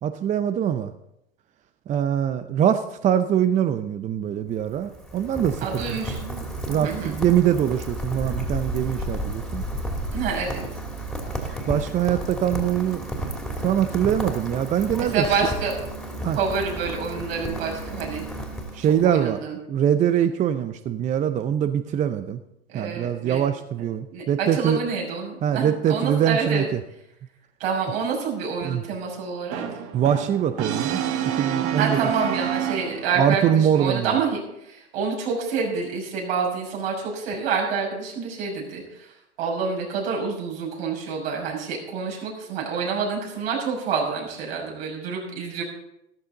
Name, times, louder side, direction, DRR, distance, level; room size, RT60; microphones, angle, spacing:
voice 1, 0.0-0.9 1.9-6.0 6.7-9.6 11.3-13.3 13.6-15.2 16.2-16.4 18.7-19.4 19.7-22.4 22.7-24.8 25.4-26.6 28.6-28.8 29.9-31.0 31.3-32.0 33.2-34.2, right 9 dB, 20° right, 11 dB, 0.5 m, -23 dB
Rain, 4.4-19.2, right 1 dB, ahead, 2.8 m, -32 dB
voice 2, 5.6-6.4 6.7-7.2 10.1-10.6 15.0-15.8 16.3-18.2 19.0-19.6 22.7-23.4 24.1-26.7 27.6-29.6 31.8-39.1 39.4-45.6, right 5 dB, 60° right, -1 dB, 6.1 m, -27 dB
Brass instrument, 29.5-33.3, right 10 dB, 40° right, 1.4 m, -28 dB
14.0 x 13.5 x 3.9 m, 0.82 s
hypercardioid pair, 105°, 33 cm